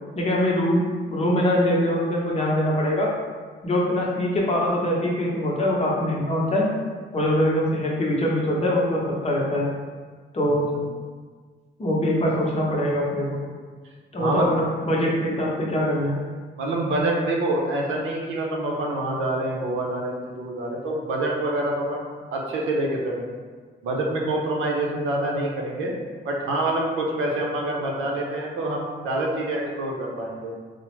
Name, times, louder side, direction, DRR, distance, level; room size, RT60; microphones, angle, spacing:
voice 1, 0.2-3.1 3.6-6.7 7.1-9.7 10.3-10.7 11.8-13.4 14.1-16.2, left 1 dB, 30° left, -3 dB, 0.8 m, -23 dB
voice 2, 14.2-14.5 16.6-22.0 22.3-23.3 23.8-25.9 26.2-30.5, right 1 dB, 80° right, -2 dB, 0.7 m, -26 dB
3.5 x 2.1 x 3.0 m, 1.5 s
cardioid pair, 90°, 20 cm